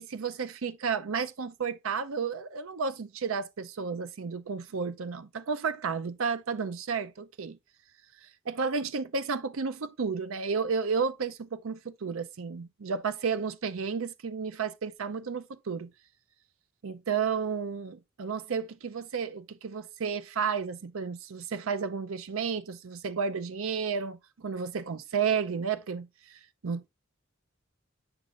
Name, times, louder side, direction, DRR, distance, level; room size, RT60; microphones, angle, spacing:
voice 1, 0.0-7.6 8.5-15.9 16.8-26.9, right 5 dB, 75° right, 0.6 m, -32 dB
7.9 x 6.1 x 2.5 m
head